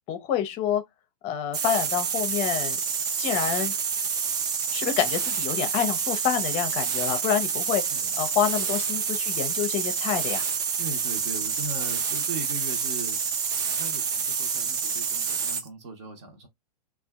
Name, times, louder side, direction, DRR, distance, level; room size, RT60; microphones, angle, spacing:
voice 1, 0.1-0.8 1.2-2.8 3.2-3.7 4.7-10.5, left 9 dB, 30° left, 0.6 m, -27 dB
sound 1, 1.5-15.7, right 6 dB, 20° right, 0.4 m, -28 dB
voice 2, 7.8-8.2 10.8-13.2 13.8-16.5, right 3 dB, 45° right, 0.8 m, -39 dB
2.5 x 2.3 x 2.2 m
hypercardioid pair, 115°, 20 cm